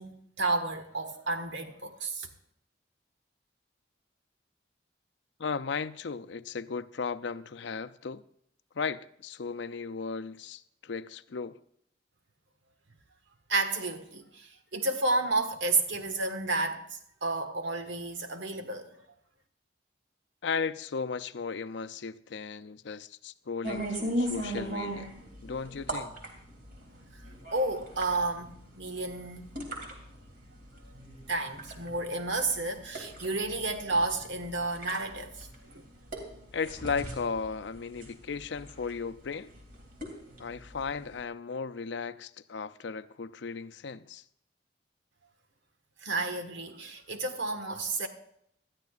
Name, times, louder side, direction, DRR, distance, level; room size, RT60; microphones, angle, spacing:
voice 1, 0.0-2.3 13.5-18.9 27.5-29.5 31.3-35.5 46.0-48.1, right 2 dB, 80° right, 1.6 m, -31 dB
voice 2, 5.4-8.2 8.7-11.6 20.4-25.1 25.4-26.2 36.5-39.5 40.4-44.2, left 5 dB, 80° left, 0.5 m, -36 dB
sound 1, 23.6-41.2, right 1 dB, 50° right, 3.1 m, -39 dB
20.0 x 13.0 x 2.5 m
head